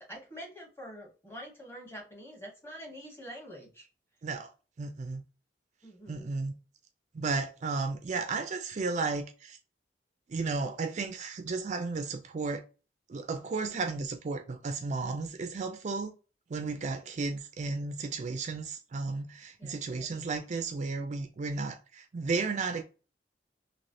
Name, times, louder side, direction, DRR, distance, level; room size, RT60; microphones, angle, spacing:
voice 1, 0.0-3.9 5.8-6.3 19.6-20.3, equal, 15° left, 1.2 m, -46 dB
voice 2, 4.8-5.2 6.1-6.5 7.1-9.6 10.3-12.6 13.1-16.1 16.5-22.8, right 4 dB, 40° right, 0.4 m, -34 dB
3.1 x 2.8 x 2.6 m
head